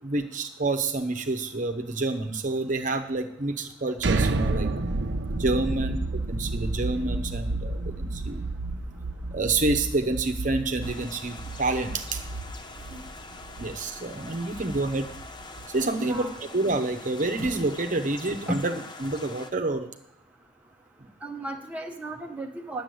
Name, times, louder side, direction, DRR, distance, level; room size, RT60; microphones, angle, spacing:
voice 1, 0.0-4.7 5.3-6.0 6.3-8.4 9.3-12.2 13.6-15.1 15.7-19.9, right 2 dB, 45° right, 6 dB, 0.9 m, -28 dB
sound 1, 4.0-15.8, right 2 dB, 65° right, 0.7 m, -31 dB
sound 2, 10.8-19.5, left 3 dB, 25° left, 0.7 m, -44 dB
voice 2, 16.0-16.4 18.5-18.6 21.2-22.8, right 1 dB, 10° right, 1 dB, 0.9 m, -35 dB
10.0 x 7.0 x 7.8 m, 0.77 s
head